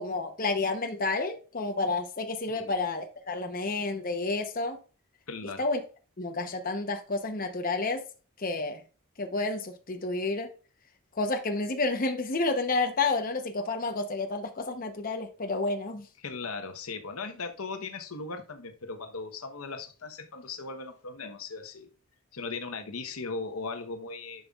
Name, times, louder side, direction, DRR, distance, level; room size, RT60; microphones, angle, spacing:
voice 1, 0.0-4.8 5.6-5.8 6.2-8.0 8.4-8.8 9.2-10.5 11.1-16.1, left 3 dB, 40° left, 0.8 m, -30 dB
voice 2, 5.3-5.6 16.2-21.9 22.3-24.5, left 4 dB, 80° left, 1.0 m, -38 dB
11.0 x 5.5 x 2.4 m
head